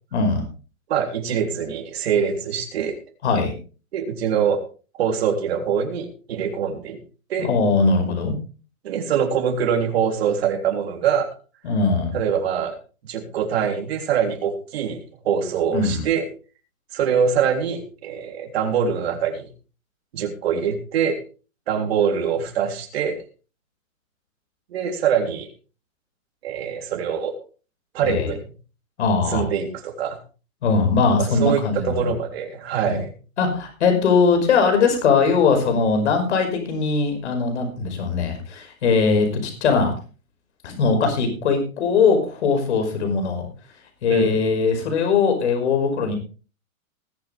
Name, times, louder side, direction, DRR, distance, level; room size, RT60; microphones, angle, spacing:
voice 1, 0.1-0.4 3.2-3.5 7.4-8.3 11.6-12.2 15.7-16.1 28.0-28.3 29.0-29.4 30.6-32.1 32.8-33.0 33.4-39.9 40.6-43.5 44.0-46.1, left 4 dB, 55° left, 5 dB, 5.3 m, -20 dB
voice 2, 0.9-2.9 3.9-4.6 5.0-7.0 7.3-7.5 8.8-11.3 12.1-12.7 13.1-15.0 15.2-16.3 16.9-19.5 20.1-21.2 21.7-23.2 24.7-25.5 26.4-27.3 27.9-28.4 29.3-30.2 31.2-33.1 44.1-44.4, right 7 dB, 45° right, 2 dB, 3.6 m, -23 dB
20.0 x 9.1 x 3.5 m, 0.36 s
hypercardioid pair, 170°, 41 cm